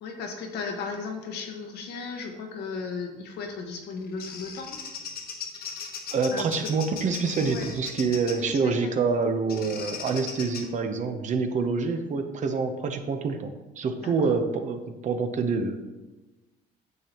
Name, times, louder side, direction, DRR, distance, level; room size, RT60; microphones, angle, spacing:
voice 1, 0.0-4.8 6.3-6.7 7.4-7.7 8.4-8.9 9.8-9.9 14.0-14.3, left 4 dB, 80° left, 3 dB, 1.4 m, -36 dB
Bird vocalization bird call bird song, 3.7-8.5 9.5-10.7, left 6 dB, 60° left, 1.2 m, -38 dB
voice 2, 6.1-15.8, right 4 dB, 45° right, 7 dB, 0.9 m, -27 dB
9.5 x 6.8 x 3.0 m, 1.1 s
cardioid pair, 110°, 17 cm